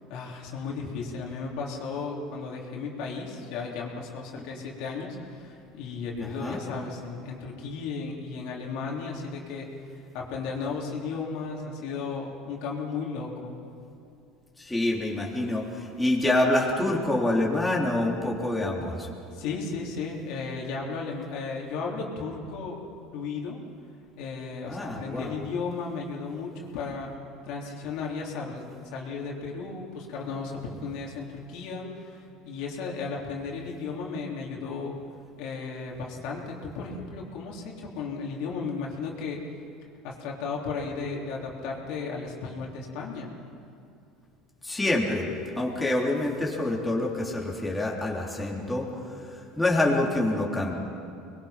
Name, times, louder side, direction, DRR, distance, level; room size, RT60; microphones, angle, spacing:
voice 1, 0.1-13.5 19.3-22.8 23.1-23.6 24.2-27.1 27.4-35.0 35.4-39.4 40.0-43.3, left 4 dB, 70° left, -2 dB, 3.7 m, -35 dB
voice 2, 6.2-6.6 14.6-19.1 24.7-25.3 44.6-45.3 45.5-48.9 49.3-50.7, left 1 dB, 10° left, -3 dB, 3.6 m, -26 dB
25.5 x 21.5 x 6.0 m, 2.5 s
supercardioid pair, 105°, 0 cm